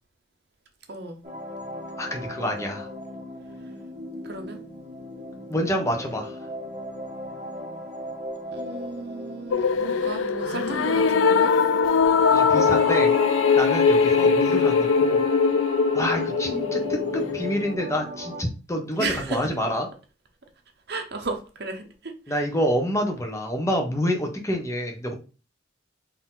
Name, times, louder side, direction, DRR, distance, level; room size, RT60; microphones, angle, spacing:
voice 1, 0.9-1.2 4.2-4.6 8.5-11.5 14.1-14.3 19.0-19.4 20.9-22.4, right 3 dB, 60° right, 3 dB, 0.9 m, -34 dB
sound 1, 1.2-18.4, equal, 40° right, 1.8 m, -36 dB
voice 2, 2.0-2.9 5.5-6.4 12.3-13.1 13.5-15.2 15.9-19.9 22.3-25.1, equal, 15° left, 3 dB, 0.8 m, -27 dB
sound 2, 9.5-17.7, left 5 dB, 85° left, 0.4 m, -21 dB
4.2 x 2.8 x 3.8 m, 0.34 s
head